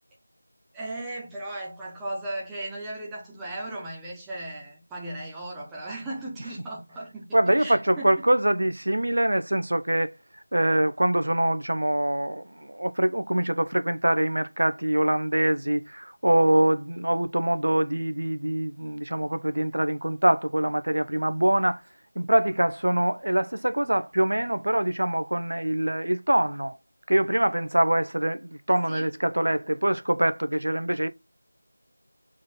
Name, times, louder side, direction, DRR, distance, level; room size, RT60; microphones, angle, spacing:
voice 1, 0.7-8.2 28.7-29.1, right 1 dB, 5° right, 1.1 m, -36 dB
voice 2, 7.3-10.1 10.5-21.8 22.1-26.8 27.1-31.1, right 1 dB, 65° right, 0.9 m, -24 dB
4.8 x 4.1 x 5.7 m
figure-of-eight pair, 170°, 0 cm